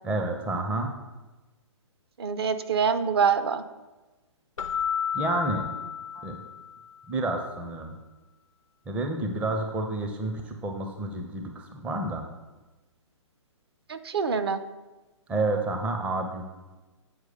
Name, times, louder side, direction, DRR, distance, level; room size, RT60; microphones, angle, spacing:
voice 1, 0.0-1.0 5.1-5.7 6.2-6.4 7.1-7.9 8.9-12.2 15.3-16.5, right 2 dB, 5° right, 4 dB, 0.5 m, -29 dB
voice 2, 2.2-3.6 13.9-14.6, right 6 dB, 50° right, 10 dB, 0.6 m, -25 dB
Keyboard (musical), 4.6-7.0, left 8 dB, 80° left, 0.5 m, -32 dB
8.0 x 4.7 x 6.4 m, 1.1 s
figure-of-eight pair, 125°, 16 cm